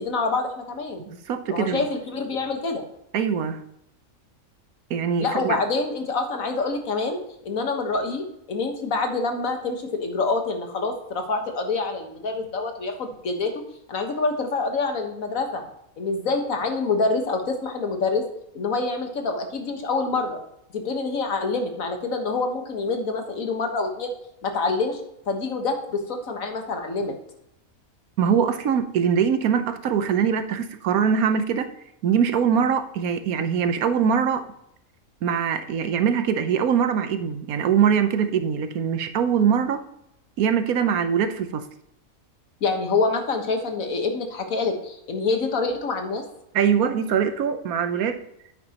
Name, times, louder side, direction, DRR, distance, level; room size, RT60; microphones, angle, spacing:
voice 1, 0.0-1.0 1.5-2.8 5.2-13.5 13.9-15.6 16.0-18.3 18.5-20.4 20.7-24.1 24.4-25.0 25.3-27.1 42.6-46.2, left 3 dB, 70° left, 4 dB, 1.8 m, -26 dB
voice 2, 1.1-1.9 3.1-3.6 4.9-5.6 28.2-31.7 32.0-34.5 35.2-39.8 40.4-41.6 46.5-48.2, right 7 dB, 80° right, 9 dB, 1.3 m, -22 dB
9.8 x 8.6 x 2.9 m, 0.80 s
omnidirectional pair, 1.5 m